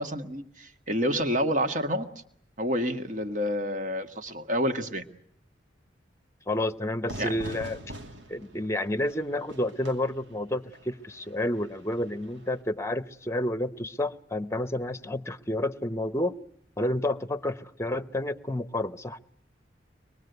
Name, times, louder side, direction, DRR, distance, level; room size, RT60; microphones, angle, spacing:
voice 1, 0.0-2.1 2.6-5.0 7.2-7.3, equal, 45° right, 7 dB, 1.9 m, -28 dB
voice 2, 6.5-7.8 8.3-16.4 16.8-19.2, left 1 dB, 15° left, 13 dB, 0.9 m, -30 dB
Fire / Fireworks, 7.1-12.6, right 1 dB, 90° right, 2.7 m, -44 dB
24.5 x 21.5 x 8.1 m, 0.69 s
head